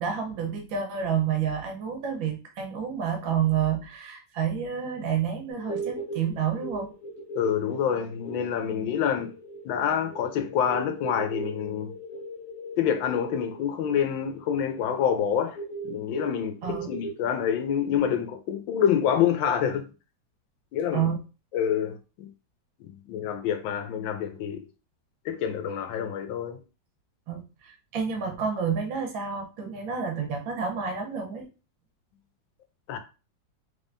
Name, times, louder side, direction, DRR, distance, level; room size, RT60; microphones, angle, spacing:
voice 1, 0.0-6.9 16.6-16.9 20.9-21.2 27.3-31.5, right 7 dB, 90° right, 1.7 m, -29 dB
sound 1, 5.5-18.0, right 2 dB, 60° left, 0.9 m, -39 dB
voice 2, 7.3-9.3 9.6-11.9 12.8-15.6 15.8-19.8 20.7-21.1 21.5-22.3 22.8-24.7 25.2-26.6 32.9-33.0, left 8 dB, 85° left, 1.5 m, -27 dB
3.7 x 3.5 x 2.6 m
omnidirectional pair, 2.0 m